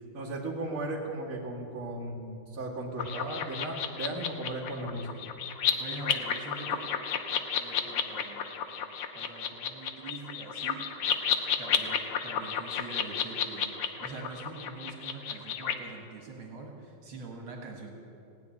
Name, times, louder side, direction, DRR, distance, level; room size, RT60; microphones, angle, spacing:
voice 1, 0.1-5.3, right 2 dB, 40° right, -4 dB, 2.5 m, -36 dB
sound 1, 3.0-15.7, left 8 dB, 85° left, 1.9 m, -32 dB
voice 2, 5.5-6.9 7.5-8.5 9.1-10.9 11.6-18.0, right 3 dB, 70° right, 1 dB, 2.5 m, -44 dB
17.5 x 7.6 x 9.7 m, 2.6 s
omnidirectional pair, 2.4 m